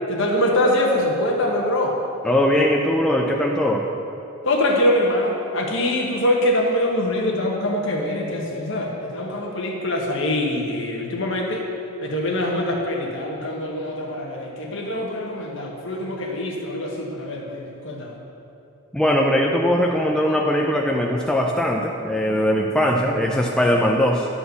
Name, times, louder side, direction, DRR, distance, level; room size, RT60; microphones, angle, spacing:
voice 1, 0.1-2.0 4.4-11.7 12.0-18.2, left 1 dB, 55° left, 0 dB, 1.2 m, -23 dB
voice 2, 2.2-3.9 18.9-24.3, equal, 5° left, -1 dB, 0.4 m, -20 dB
11.0 x 4.3 x 6.9 m, 2.7 s
head